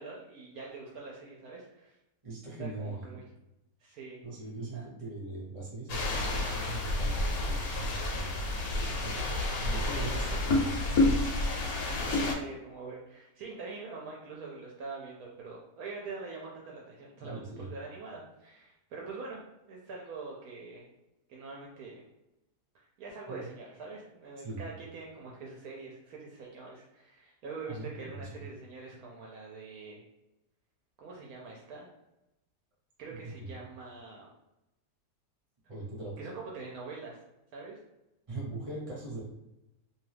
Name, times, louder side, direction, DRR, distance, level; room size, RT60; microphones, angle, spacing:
voice 1, 0.0-2.0 2.6-3.2 3.8-4.2 4.7-4.8 11.7-19.4 19.7-20.8 21.3-22.0 22.7-30.1 31.0-31.9 33.0-34.2 36.2-37.2 37.5-37.8, right 4 dB, 70° right, -3 dB, 1.0 m, -44 dB
voice 2, 2.2-3.1 4.2-8.4 8.9-9.2 9.6-10.8 11.9-12.2 17.2-17.7 23.3-23.5 24.4-24.7 27.7-28.4 33.2-33.5 35.7-36.1 38.3-39.2, right 2 dB, 25° right, -5 dB, 0.9 m, -41 dB
sound 1, 5.9-12.3, left 2 dB, 70° left, 1.1 m, -29 dB
2.7 x 2.3 x 3.3 m, 0.93 s
omnidirectional pair, 1.7 m